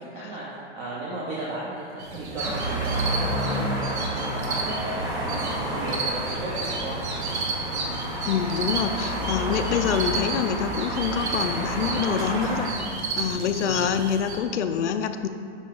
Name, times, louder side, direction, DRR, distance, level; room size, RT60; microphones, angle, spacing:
voice 1, 0.0-5.2 5.6-7.3 13.6-13.9, right 2 dB, 35° right, -6 dB, 1.0 m, -35 dB
sound 1, 2.0-14.4, right 3 dB, 70° right, 1.3 m, -33 dB
sound 2, 2.4-12.7, right 1 dB, 10° right, 0.5 m, -30 dB
voice 2, 8.0-12.7 13.2-15.3, left 7 dB, 85° left, 7 dB, 0.6 m, -26 dB
8.9 x 5.1 x 3.8 m, 2.4 s
hypercardioid pair, 160°, 34 cm